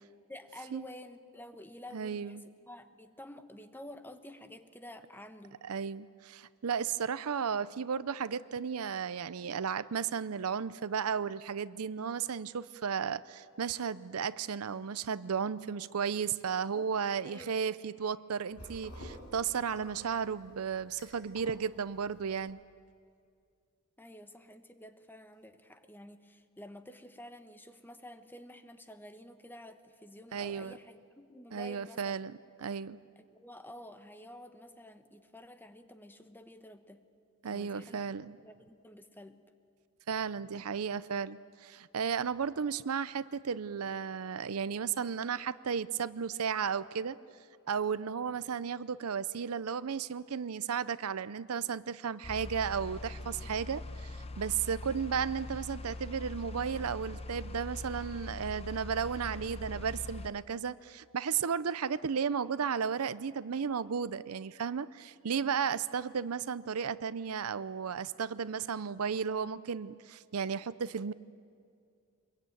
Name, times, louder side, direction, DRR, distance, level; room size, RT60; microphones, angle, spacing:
voice 1, 0.3-5.6 16.7-16.8 17.2-17.5 24.0-32.1 33.2-37.0 37.4-38.1 38.4-39.4, left 1 dB, 10° left, 9 dB, 1.1 m, -50 dB
voice 2, 1.9-2.4 5.6-22.6 30.3-30.7 31.5-33.0 37.4-38.4 40.1-47.2 47.7-71.1, right 6 dB, 75° right, 16 dB, 0.6 m, -34 dB
sound 1, 18.5-22.5, equal, 80° left, 6.4 m, -51 dB
sound 2, 52.2-60.3, left 2 dB, 30° left, 0.8 m, -42 dB
25.0 x 22.0 x 9.2 m, 2.3 s
head